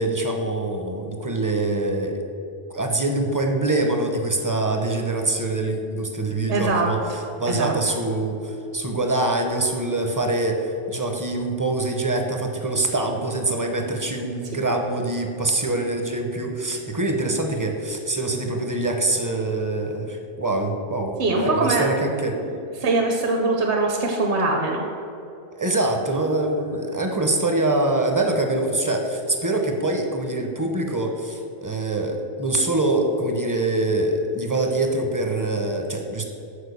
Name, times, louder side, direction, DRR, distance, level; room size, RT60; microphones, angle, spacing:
voice 1, 0.0-2.2 2.7-7.0 7.4-22.4 25.6-36.2, right 2 dB, 25° right, 3 dB, 0.4 m, -24 dB
voice 2, 6.5-6.9 7.5-7.7 21.2-21.9 22.3-22.5 22.8-24.9, right 3 dB, 50° right, 1 dB, 0.8 m, -22 dB
6.6 x 4.5 x 6.6 m, 2.7 s
omnidirectional pair, 1.3 m